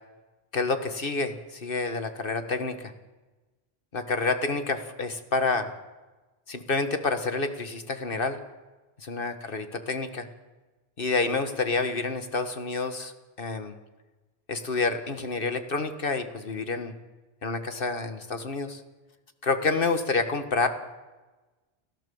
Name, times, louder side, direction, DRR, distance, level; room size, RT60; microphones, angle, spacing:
voice 1, 0.5-2.9 3.9-5.7 6.5-8.4 9.0-10.3 11.0-13.1 13.4-13.8 14.5-16.9 17.4-18.8 19.4-20.7, left 3 dB, 60° left, 8 dB, 1.8 m, -28 dB
30.0 x 14.0 x 7.1 m, 1.2 s
omnidirectional pair, 1.1 m